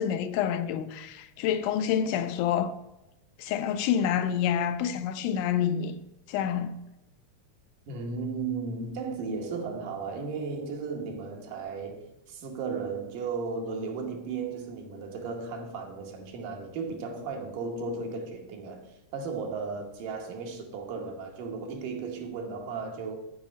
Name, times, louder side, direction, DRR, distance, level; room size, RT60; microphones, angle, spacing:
voice 1, 0.0-2.7 3.4-6.0 6.3-6.8, left 9 dB, 80° left, 2.0 m, -28 dB
voice 2, 7.9-23.2, right 4 dB, 85° right, 2.8 m, -35 dB
7.3 x 5.0 x 7.1 m
omnidirectional pair, 3.6 m